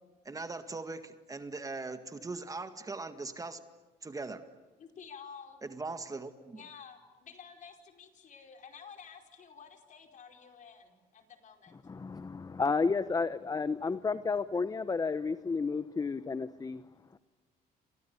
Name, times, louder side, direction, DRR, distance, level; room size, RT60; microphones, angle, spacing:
voice 1, 0.3-3.6 4.0-4.5 5.6-6.6, right 3 dB, 20° right, 9 dB, 1.8 m, -40 dB
voice 2, 4.8-5.6 6.5-11.8 15.4-16.1 16.9-17.2, left 6 dB, 50° left, 5 dB, 4.8 m, -52 dB
voice 3, 11.8-16.8 17.1-17.2, left 4 dB, 20° left, 13 dB, 0.9 m, -32 dB
29.5 x 27.5 x 7.1 m, 1.2 s
cardioid pair, 110°, 17 cm